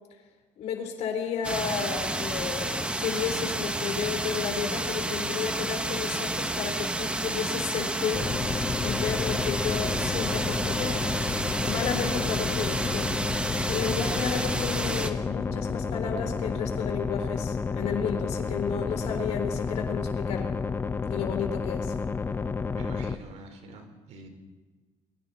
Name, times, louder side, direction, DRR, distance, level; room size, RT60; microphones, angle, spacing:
voice 1, 0.6-8.3 8.8-11.1 11.6-20.5 21.1-21.9, left 7 dB, 55° left, 4 dB, 3.9 m, -32 dB
sound 1, 1.4-15.1, right 1 dB, 10° right, 1.0 m, -30 dB
sound 2, 8.1-23.2, left 5 dB, 15° left, 0.7 m, -30 dB
voice 2, 22.7-24.3, right 2 dB, 55° right, 4 dB, 4.3 m, -45 dB
29.5 x 23.0 x 4.3 m, 1.3 s
cardioid pair, 170°, 13 cm